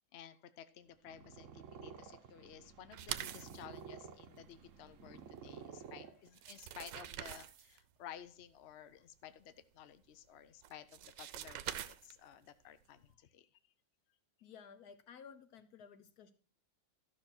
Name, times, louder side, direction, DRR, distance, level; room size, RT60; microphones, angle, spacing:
voice 1, 0.1-13.5, left 10 dB, 85° left, 12 dB, 0.5 m, -54 dB
Purr, 0.9-6.6, right 6 dB, 55° right, 0.9 m, -52 dB
sound 1, 2.9-3.6 5.9-6.0 6.3-7.8 10.6-12.4, right 11 dB, 75° right, 1.2 m, -44 dB
voice 2, 14.4-16.3, left 7 dB, 60° left, 11 dB, 1.3 m, -55 dB
13.0 x 6.2 x 4.4 m, 0.42 s
omnidirectional pair, 2.1 m